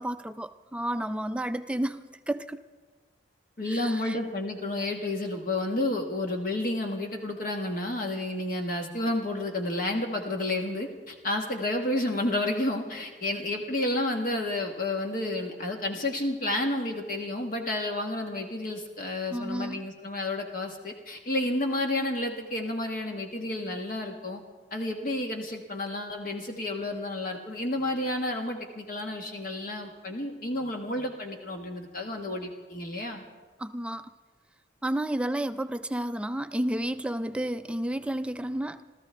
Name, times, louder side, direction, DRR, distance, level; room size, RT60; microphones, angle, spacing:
voice 1, 0.0-2.6 3.6-4.2 19.3-19.9 33.6-34.1 34.8-38.8, right 1 dB, 5° right, 10 dB, 0.4 m, -31 dB
voice 2, 3.6-24.4 24.7-33.2, left 1 dB, 50° left, 3 dB, 1.2 m, -31 dB
28.5 x 13.5 x 3.3 m, 1.4 s
head